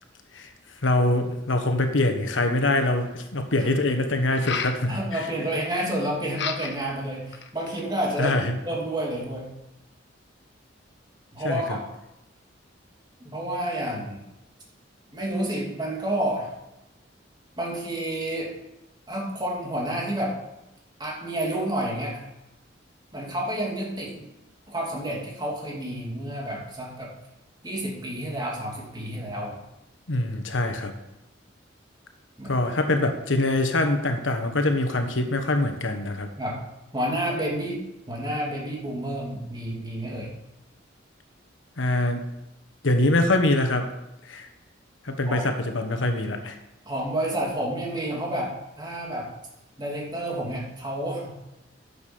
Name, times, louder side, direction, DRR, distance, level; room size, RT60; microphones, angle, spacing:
voice 1, 0.8-5.2 8.2-8.6 11.4-11.8 30.1-30.9 32.4-36.3 41.8-42.2 42.8-43.9 44.2-44.5 45.0-46.6, left 2 dB, 85° left, 6 dB, 1.3 m, -24 dB
sound 1, 4.3-4.8 6.3-6.9 7.3-7.9, left 6 dB, 65° left, 1.0 m, -32 dB
voice 2, 4.9-9.5 11.3-11.8 13.2-14.2 15.1-16.5 17.6-18.5 19.1-20.4 21.0-22.2 23.1-24.3 24.7-27.1 27.6-29.6 32.4-32.5 36.4-36.6 36.9-37.8 38.1-40.3 45.3-45.5 46.9-49.3 49.8-51.4, right 1 dB, 20° right, -2 dB, 2.7 m, -30 dB
10.0 x 7.1 x 6.1 m, 0.92 s
head